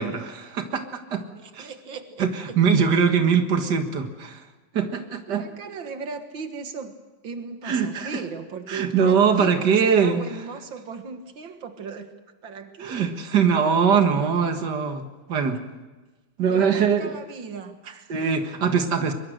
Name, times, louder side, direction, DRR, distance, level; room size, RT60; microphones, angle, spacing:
voice 1, 0.0-1.2 1.5-1.7 2.2-4.4 4.7-5.5 7.6-8.2 8.7-10.2 12.8-15.6 16.4-17.1 18.1-19.1, right 6 dB, 60° right, 6 dB, 2.3 m, -22 dB
voice 2, 1.4-2.3 5.3-6.9 7.2-12.1 12.4-13.2 16.5-18.1, right 5 dB, 90° right, 7 dB, 2.3 m, -37 dB
23.5 x 23.0 x 6.6 m, 1.2 s
omnidirectional pair, 2.0 m